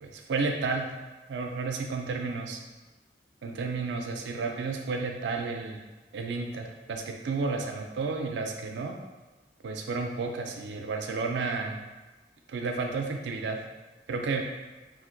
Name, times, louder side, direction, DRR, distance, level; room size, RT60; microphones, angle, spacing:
voice 1, 0.0-0.9 1.3-2.6 3.4-5.8 6.1-8.9 9.6-11.9 12.5-13.6 14.1-14.4, right 4 dB, 75° right, 3 dB, 0.4 m, -32 dB
2.5 x 2.1 x 3.8 m, 1.2 s
head